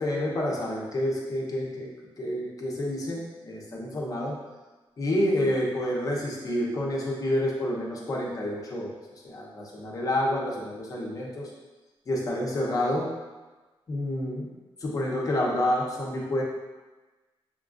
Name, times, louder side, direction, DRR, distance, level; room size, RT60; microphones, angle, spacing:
voice 1, 0.0-1.9 2.2-4.3 5.0-8.9 9.2-11.5 12.1-13.1 13.9-14.5 14.8-16.4, left 1 dB, 40° left, -3 dB, 0.8 m, -28 dB
6.7 x 2.4 x 2.5 m, 1.2 s
wide cardioid pair, 170°, 10 cm